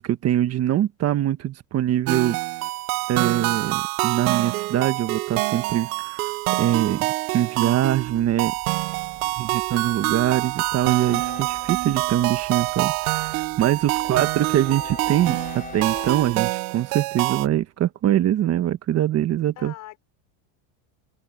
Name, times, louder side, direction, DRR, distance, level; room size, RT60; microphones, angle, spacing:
voice 1, 0.0-2.4 3.1-6.3 6.6-8.5 9.4-19.7, right 12 dB, 35° right, 1.3 m, -23 dB
sound 1, 2.1-17.5, right 23 dB, 90° right, 0.7 m, -26 dB
Train, 7.9-16.5, left 5 dB, 20° left, 3.8 m, -43 dB
voice 2, 9.2-9.7 13.9-14.8 19.6-20.0, left 15 dB, 50° left, 5.1 m, -44 dB
supercardioid pair, 135°, 42 cm